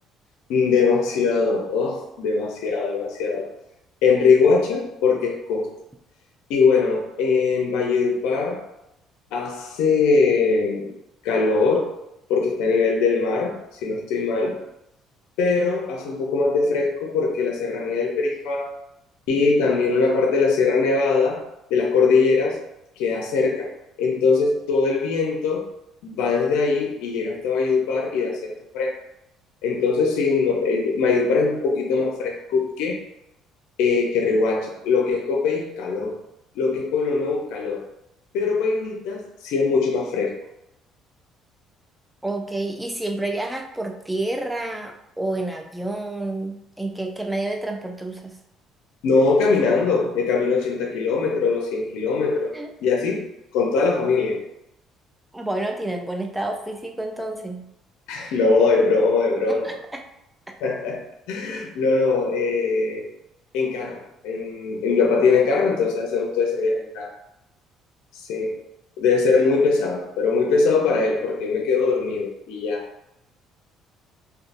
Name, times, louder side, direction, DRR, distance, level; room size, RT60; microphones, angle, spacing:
voice 1, 0.5-3.5 4.0-5.7 6.5-8.6 9.3-10.9 11.2-11.9 12.3-14.6 15.4-18.7 19.3-21.4 21.7-22.6 23.0-23.7 24.0-25.7 26.0-28.9 29.6-33.0 33.8-36.2 36.6-37.8 38.3-40.3 49.0-53.2 53.5-54.4 58.1-59.7 60.6-63.0 63.5-67.1 68.3-68.6 69.0-72.8, left 4 dB, 80° left, 1 dB, 0.5 m, -21 dB
voice 2, 42.2-48.4 52.5-52.7 55.3-57.7 59.5-60.0, right 2 dB, 5° right, 3 dB, 0.4 m, -29 dB
2.7 x 2.2 x 2.5 m, 0.83 s
cardioid pair, 95°, 0 cm